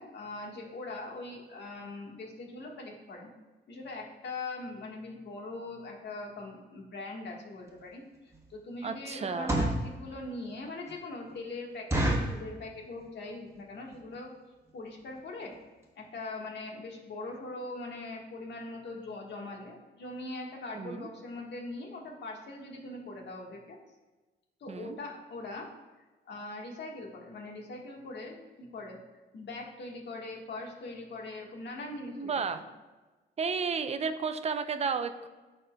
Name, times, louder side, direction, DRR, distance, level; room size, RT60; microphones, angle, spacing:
voice 1, 0.0-3.3 3.7-8.0 8.5-14.3 14.7-15.6 15.9-23.8 24.6-25.7 26.2-29.0 29.3-32.7, left 2 dB, 60° left, 0 dB, 1.5 m, -41 dB
sound 1, 7.7-7.8 8.3-8.5 9.2-9.9 10.4-10.5 10.9-11.0 11.3-11.4 11.9-12.4 13.0-13.3 13.5-13.6 13.9-14.1 14.7-14.8 15.0-15.2 15.5-15.6 15.8-15.9, right 1 dB, 15° right, 1.3 m, -29 dB
voice 2, 8.8-9.5 20.7-21.1 24.7-25.0 32.2-32.6 33.4-35.3, right 5 dB, 30° right, 9 dB, 0.6 m, -32 dB
12.5 x 4.3 x 2.3 m, 1.2 s
cardioid pair, 90°, 20 cm